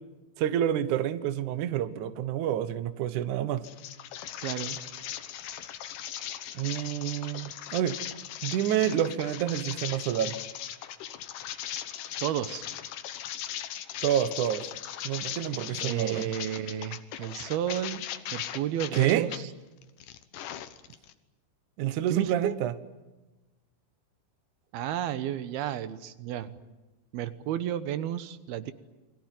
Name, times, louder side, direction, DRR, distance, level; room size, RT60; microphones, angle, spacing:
voice 1, 0.4-3.7 6.6-8.0 8.4-10.4 14.0-14.6 15.0-16.3 18.9-19.3 21.8-22.7, right 11 dB, 90° right, 12 dB, 1.7 m, -28 dB
sound 1, 3.6-19.4 19.8-21.1, left 11 dB, 70° left, 2.0 m, -38 dB
voice 2, 4.4-4.8 12.2-12.6 15.7-19.4 22.1-22.5 24.7-26.5 27.1-28.7, right 11 dB, 70° right, 12 dB, 2.7 m, -32 dB
29.5 x 22.0 x 9.2 m, 1.1 s
omnidirectional pair, 5.3 m